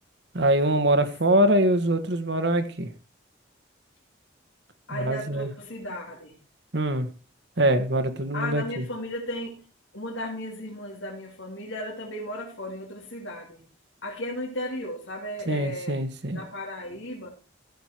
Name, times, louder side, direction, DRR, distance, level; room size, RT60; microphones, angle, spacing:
voice 1, 0.3-2.9 4.9-5.5 6.7-7.1 7.6-8.8 15.5-16.4, right 1 dB, 60° right, 9 dB, 1.5 m, -23 dB
voice 2, 4.9-6.4 8.3-9.6 9.9-13.7 14.0-16.0 16.3-17.3, left 1 dB, 85° left, -2 dB, 2.7 m, -35 dB
14.5 x 6.7 x 4.5 m, 0.32 s
head